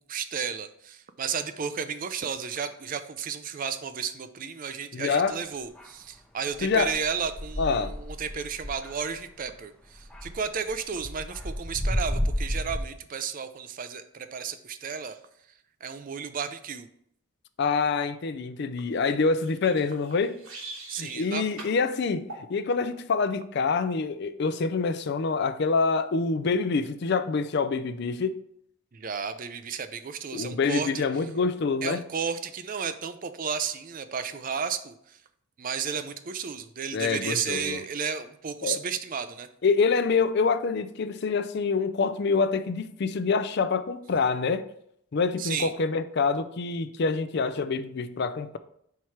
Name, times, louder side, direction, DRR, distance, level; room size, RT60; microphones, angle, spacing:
voice 1, 0.1-15.2 15.8-16.9 20.9-21.5 28.9-31.3 31.8-35.2 35.6-39.5 45.4-45.7, right 6 dB, 40° right, 0.4 m, -33 dB
voice 2, 4.9-5.4 6.6-6.9 7.6-7.9 17.6-20.4 21.0-28.4 30.3-32.0 36.9-37.8 38.6-38.8 39.6-44.6 45.1-48.6, left 4 dB, 50° left, 0.4 m, -26 dB
sound 1, 5.8-5.9 6.5-9.5 9.9-12.8, equal, 5° left, 0.6 m, -32 dB
sound 2, 19.4-21.3 21.6-21.8 22.3-22.5, right 2 dB, 90° right, 2.1 m, -42 dB
4.7 x 4.6 x 5.7 m
head